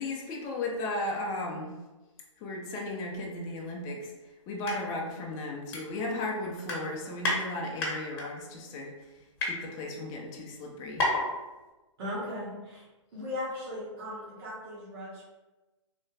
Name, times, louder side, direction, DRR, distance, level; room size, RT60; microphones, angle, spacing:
voice 1, 0.0-1.7 2.4-4.1 4.5-8.9 9.4-11.1, left 2 dB, 20° left, -1 dB, 0.5 m, -35 dB
sound 1, 4.5-4.8 5.1-5.2 5.7-6.3 6.6-7.4 7.8-8.3 8.9-9.5 10.2-10.3 10.5-10.6 11.0-11.3 11.6-11.7, left 2 dB, 45° left, 1.0 m, -30 dB
voice 2, 12.0-12.8 13.1-15.2, left 1 dB, 50° right, -7 dB, 1.3 m, -37 dB
3.3 x 2.3 x 3.2 m, 1.1 s
hypercardioid pair, 145°, 16 cm